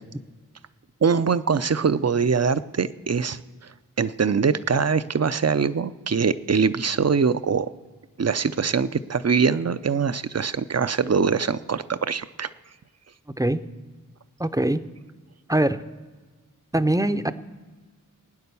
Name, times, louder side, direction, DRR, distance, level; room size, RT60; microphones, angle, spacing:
voice 1, 1.0-3.4 4.0-7.7 8.2-12.5, right 5 dB, 50° right, 14 dB, 0.6 m, -23 dB
voice 2, 14.4-14.8 15.5-15.8 16.7-17.3, right 1 dB, 10° right, 11 dB, 0.6 m, -22 dB
20.0 x 9.4 x 6.9 m, 1.4 s
wide cardioid pair, 50°, 34 cm